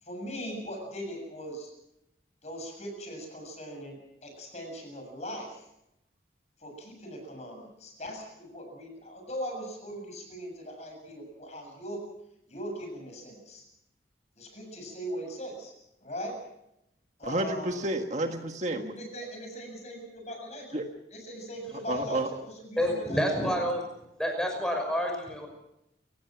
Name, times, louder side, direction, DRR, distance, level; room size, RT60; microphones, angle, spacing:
voice 1, 0.0-1.7 2.4-5.6 6.6-12.0 12.5-13.6 14.4-15.7 16.0-16.4 17.2-17.7 18.9-20.8 21.1-23.2, equal, 40° left, 3 dB, 7.2 m, -40 dB
voice 2, 17.2-18.9 20.7-20.8 21.9-22.3, right 1 dB, 40° right, 4 dB, 1.6 m, -30 dB
voice 3, 22.8-23.8 24.2-25.5, equal, 5° left, 3 dB, 5.9 m, -28 dB
29.0 x 16.5 x 6.1 m, 0.84 s
head